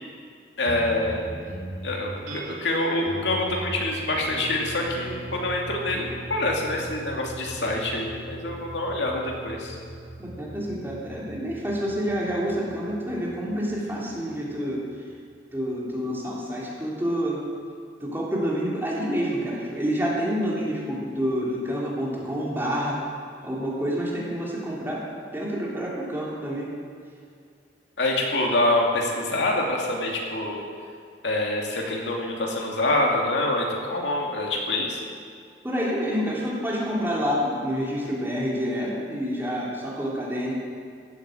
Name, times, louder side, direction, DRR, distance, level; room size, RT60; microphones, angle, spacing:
voice 1, 0.6-1.2 1.8-9.8 28.0-30.6 31.2-35.0, left 1 dB, 75° left, -1 dB, 2.5 m, -26 dB
sound 1, 0.6-15.3, right 1 dB, 80° right, 3.6 m, -39 dB
voice 2, 10.2-14.8 15.5-17.4 18.0-23.0 23.4-25.0 25.3-26.7 35.6-40.5, equal, 10° right, -5 dB, 3.0 m, -28 dB
16.0 x 9.1 x 7.7 m, 2.3 s
head